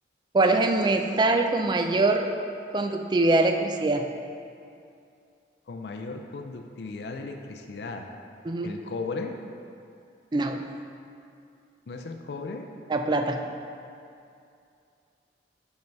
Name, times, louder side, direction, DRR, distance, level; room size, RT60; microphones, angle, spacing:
voice 1, 0.3-2.3 2.7-4.1 8.5-8.8 10.3-10.6 12.9-13.4, right 2 dB, 25° right, 5 dB, 0.3 m, -23 dB
voice 2, 5.7-8.1 8.6-9.4 11.9-12.7, left 3 dB, 65° left, 4 dB, 0.4 m, -36 dB
5.4 x 4.5 x 5.3 m, 2.5 s
head